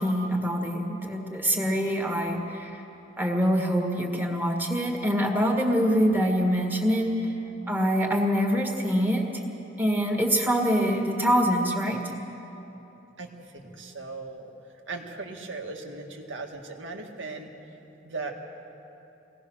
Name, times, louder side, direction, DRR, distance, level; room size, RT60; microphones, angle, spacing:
voice 1, 0.0-2.8 3.2-7.2 7.7-9.4 9.8-12.0, equal, 10° right, 1 dB, 1.9 m, -25 dB
voice 2, 13.2-14.5 14.9-17.5 18.0-18.3, right 3 dB, 80° right, 2 dB, 2.0 m, -38 dB
23.0 x 18.0 x 6.4 m, 2.9 s
head